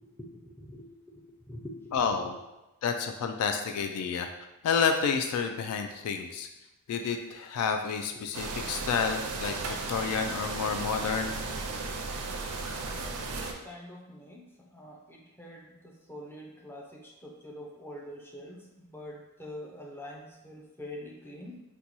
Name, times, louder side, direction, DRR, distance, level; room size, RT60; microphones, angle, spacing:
voice 1, 0.0-1.9 12.7-21.6, left 1 dB, 10° left, -1 dB, 0.4 m, -45 dB
voice 2, 1.9-2.4 2.8-4.3 4.6-6.5 6.9-11.3, left 6 dB, 85° left, 7 dB, 0.3 m, -30 dB
sound 1, 8.3-13.5, right 3 dB, 75° right, 0.4 m, -35 dB
4.0 x 2.2 x 2.9 m, 0.98 s
head